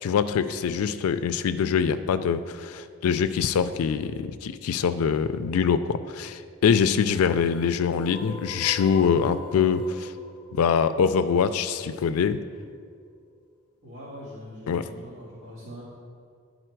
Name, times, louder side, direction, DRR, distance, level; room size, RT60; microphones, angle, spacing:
voice 1, 0.0-10.1 10.5-12.4 14.7-14.8, left 6 dB, 80° left, 11 dB, 0.3 m, -24 dB
sound 1, 6.7-12.8, left 2 dB, 20° left, 1.0 m, -44 dB
voice 2, 13.8-15.8, equal, 75° right, -10 dB, 1.8 m, -42 dB
10.0 x 4.0 x 4.5 m, 2.2 s
head